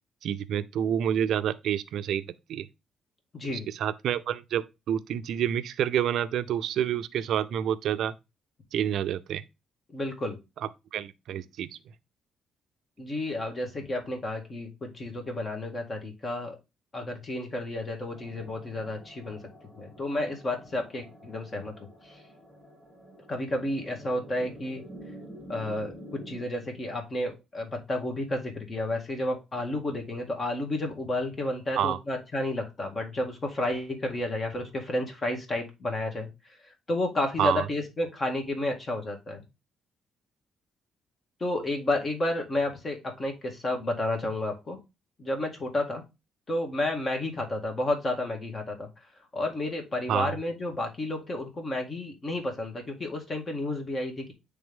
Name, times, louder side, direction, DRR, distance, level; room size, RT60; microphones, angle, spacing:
voice 1, 0.2-2.2 2.5-2.7 3.5-8.1 8.7-9.4 10.9-11.8 31.8-32.0 37.4-37.7 50.1-50.3, right 10 dB, 75° right, 0.4 m, -28 dB
voice 2, 3.3-3.7 9.9-10.4 13.0-16.6 16.9-19.4 19.8-21.7 22.0-22.2 23.3-24.8 25.5-36.3 36.6-39.4 41.4-44.8 45.2-46.0 46.5-48.9 49.3-54.3, left 1 dB, 35° left, 2.0 m, -31 dB
sound 1, 18.1-26.4, equal, 5° left, 2.5 m, -48 dB
8.7 x 3.4 x 3.6 m
cardioid pair, 90°, 0 cm